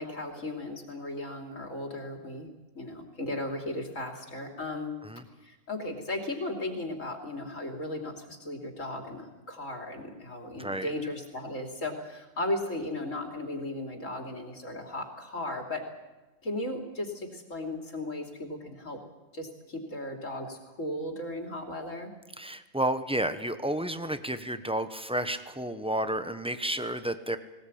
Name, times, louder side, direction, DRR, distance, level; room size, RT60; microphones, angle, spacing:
voice 1, 0.0-2.5 2.7-4.9 5.4-15.9 16.4-19.0 19.3-22.1, left 1 dB, 75° left, 3 dB, 3.3 m, -36 dB
voice 2, 22.4-27.4, right 1 dB, 5° right, 10 dB, 1.0 m, -31 dB
20.0 x 19.5 x 8.7 m, 1.1 s
omnidirectional pair, 1.4 m